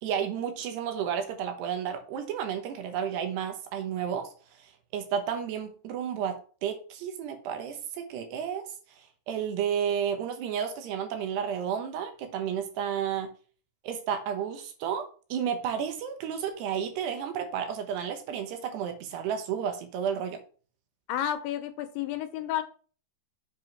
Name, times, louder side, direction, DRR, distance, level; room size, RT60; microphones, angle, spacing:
voice 1, 0.0-4.3 4.6-8.6 9.0-13.3 13.8-20.4, right 8 dB, 70° right, 6 dB, 3.1 m, -32 dB
voice 2, 21.1-22.6, left 11 dB, 80° left, 9 dB, 3.1 m, -31 dB
7.5 x 5.5 x 5.8 m, 0.39 s
omnidirectional pair, 5.3 m